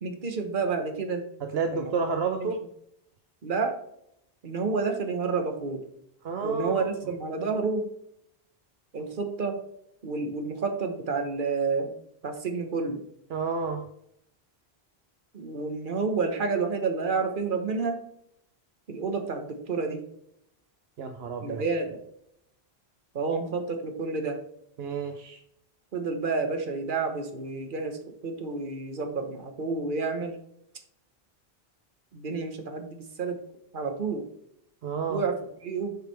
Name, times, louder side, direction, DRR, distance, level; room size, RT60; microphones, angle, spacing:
voice 1, 0.0-1.3 1.7-1.9 2.4-2.5 3.4-3.8 4.4-5.8 6.4-7.9 8.9-9.6 10.0-11.9 12.2-13.0 15.3-18.0 18.9-20.0 21.4-21.9 23.1-24.4 25.9-30.4 32.1-33.4 33.7-34.3 35.1-36.0, right 4 dB, 55° right, 5 dB, 1.3 m, -30 dB
voice 2, 1.5-2.6 6.2-6.9 13.3-13.8 21.0-21.6 24.8-25.4 34.8-35.2, right 5 dB, 75° right, 5 dB, 0.9 m, -30 dB
8.2 x 4.8 x 3.3 m, 0.75 s
omnidirectional pair, 1.1 m